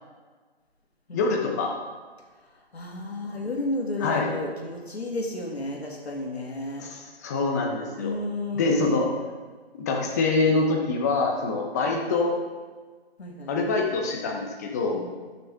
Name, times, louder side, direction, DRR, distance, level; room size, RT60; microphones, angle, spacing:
voice 1, 1.1-1.7 3.2-3.4 4.0-4.3 6.8-8.1 8.5-9.1 9.7-12.3 13.5-15.0, left 3 dB, 15° left, 1 dB, 0.8 m, -25 dB
voice 2, 2.7-6.9 8.0-9.0 13.2-13.5 14.9-15.1, left 2 dB, 90° left, 0 dB, 2.4 m, -32 dB
13.0 x 6.7 x 3.6 m, 1.4 s
hypercardioid pair, 160°, 31 cm